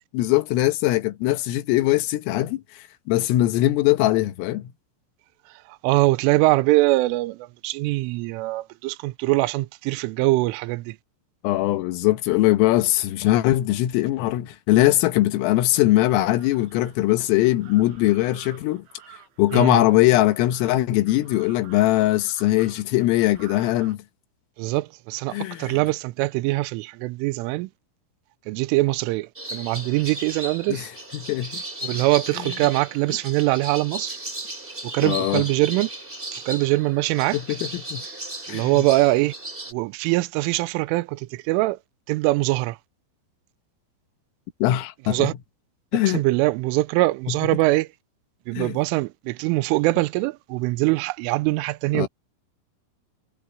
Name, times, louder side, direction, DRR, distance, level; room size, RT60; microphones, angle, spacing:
voice 1, 0.1-2.6 3.1-4.7 11.4-18.9 19.4-24.0 25.3-25.8 30.7-30.9 31.1-31.6 32.4-32.5 35.0-35.4 37.3-38.0 38.5-38.9 44.6-45.3 45.9-46.2 47.3-47.4 48.6-48.8 51.9-52.1, left 15 dB, 90° left, 3.9 m, -21 dB
voice 2, 5.7-11.0 19.5-19.8 24.6-27.7 28.5-30.9 31.8-34.2 34.8-35.9 36.3-37.4 38.5-39.3 39.7-41.8 42.1-42.8 45.1-45.3 46.0-47.9 48.5-52.1, right 20 dB, 85° right, 3.2 m, -23 dB
sound 1, 15.6-24.0, right 10 dB, 65° right, 7.6 m, -50 dB
sound 2, 29.4-39.7, right 1 dB, 10° right, 3.9 m, -36 dB
omnidirectional pair, 5.8 m